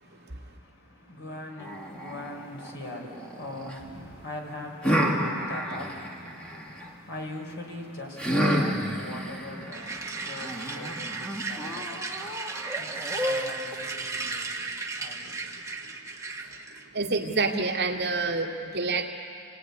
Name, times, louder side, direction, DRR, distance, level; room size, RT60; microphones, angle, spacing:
voice 1, 0.0-16.0, left 1 dB, 65° left, 1 dB, 4.7 m, -42 dB
sound 1, 1.6-3.8 4.8-6.9 8.2-13.8, equal, 5° left, 2.5 m, -30 dB
sound 2, 9.7-16.9, right 4 dB, 15° right, 1.5 m, -35 dB
voice 2, 16.9-19.1, right 3 dB, 50° right, 0 dB, 2.3 m, -27 dB
28.5 x 19.0 x 9.8 m, 2.5 s
head